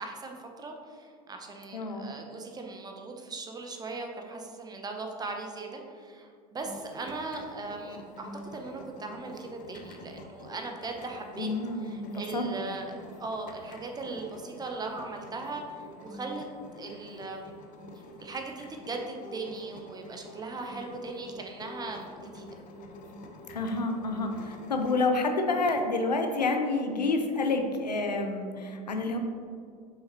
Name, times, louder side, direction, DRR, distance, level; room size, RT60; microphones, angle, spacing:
voice 1, 0.0-11.5 11.8-16.5 16.7-17.5 18.2-22.5, right 3 dB, 20° right, 3 dB, 0.8 m, -39 dB
voice 2, 1.7-2.1 11.4-12.4 23.5-29.2, left 3 dB, 90° left, 5 dB, 0.7 m, -29 dB
sound 1, 6.6-25.0, left 1 dB, 40° left, 0.8 m, -47 dB
6.7 x 5.6 x 3.0 m, 2.2 s
hypercardioid pair, 85°, 20 cm